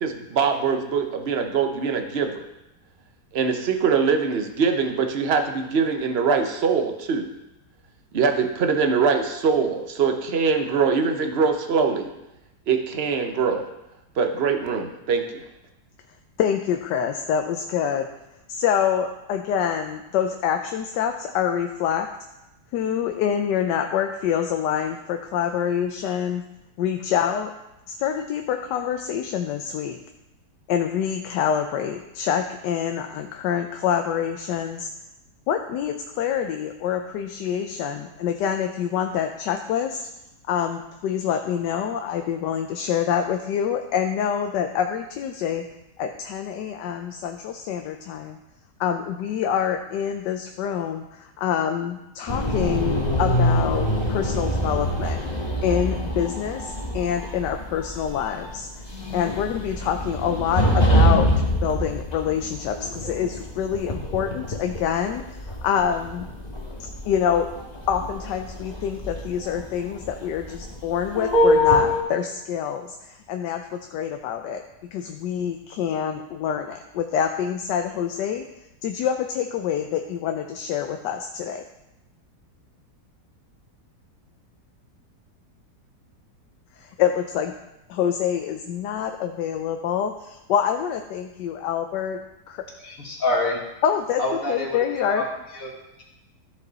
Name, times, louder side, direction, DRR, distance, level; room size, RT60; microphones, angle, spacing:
voice 1, 0.0-2.5 3.3-7.3 8.1-12.1 12.7-13.7 14.2-15.4, right 5 dB, 50° right, 6 dB, 0.8 m, -23 dB
voice 2, 16.4-18.1 18.5-22.1 22.7-26.4 26.8-27.5 27.9-30.0 30.7-34.9 35.5-40.1 40.5-45.7 46.0-48.4 48.8-55.2 55.6-58.7 59.1-66.3 67.0-67.5 67.9-74.6 74.9-78.4 78.8-81.6 86.8-87.6 87.9-92.2 92.5-92.6 93.8-95.2, left 8 dB, 85° left, 5 dB, 1.3 m, -26 dB
sound 1, 52.3-72.0, equal, 25° left, 1.5 m, -25 dB
voice 3, 92.8-93.6 94.2-95.2 95.5-95.7, left 2 dB, 55° left, -2 dB, 2.1 m, -27 dB
13.5 x 5.4 x 4.0 m, 0.93 s
omnidirectional pair, 1.8 m